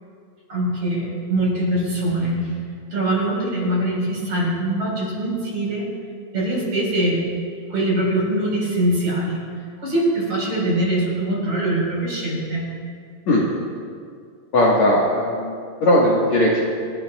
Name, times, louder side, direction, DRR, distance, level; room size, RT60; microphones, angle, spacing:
voice 1, 0.5-2.6 2.9-5.8 6.3-7.2 7.7-9.4 9.8-12.7, right 1 dB, 30° right, -5 dB, 5.2 m, -23 dB
voice 2, 14.5-15.5 15.8-16.6, left 1 dB, 70° left, -5 dB, 1.7 m, -17 dB
29.0 x 14.0 x 2.4 m, 2.2 s
omnidirectional pair, 6.0 m